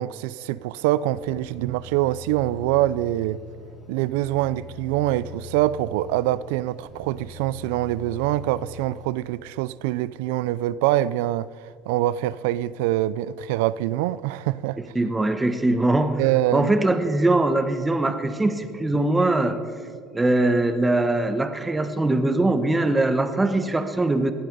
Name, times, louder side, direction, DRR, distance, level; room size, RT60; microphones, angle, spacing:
voice 1, 0.0-3.4 3.9-14.8 16.2-16.7, right 15 dB, 85° right, 0.3 m, -24 dB
sound 1, 1.1-9.1, left 2 dB, 20° left, 4.2 m, -42 dB
voice 2, 14.9-16.2 16.5-19.6 20.1-24.3, right 2 dB, 10° right, 1.2 m, -21 dB
19.0 x 11.0 x 5.4 m
supercardioid pair, 115°, 0 cm